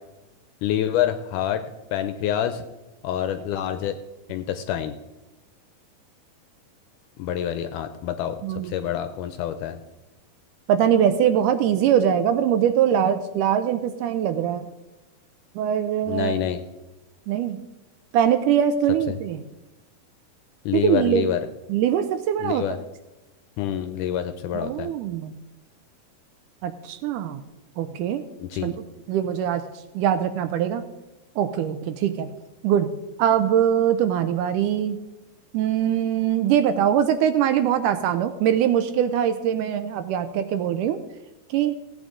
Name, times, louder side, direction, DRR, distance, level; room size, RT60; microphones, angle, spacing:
voice 1, 0.6-1.6 1.9-2.6 3.0-3.9 4.3-5.0 7.2-8.4 8.6-9.8 16.1-16.6 19.1-19.2 20.7-21.4 22.4-22.8 23.6-24.9 28.4-28.7, left 10 dB, 80° left, 9 dB, 1.9 m, -27 dB
voice 2, 8.4-8.8 10.7-14.7 15.6-16.4 17.3-17.6 18.1-19.4 20.7-21.3 21.7-22.6 24.5-25.3 26.6-27.4 27.8-28.2 28.6-28.7 29.1-29.6 30.0-30.8 31.4-32.3 32.6-32.9 33.2-35.0 35.5-41.0 41.5-41.8, right 9 dB, 80° right, 10 dB, 2.0 m, -22 dB
16.0 x 8.9 x 3.7 m, 1.0 s
omnidirectional pair, 4.0 m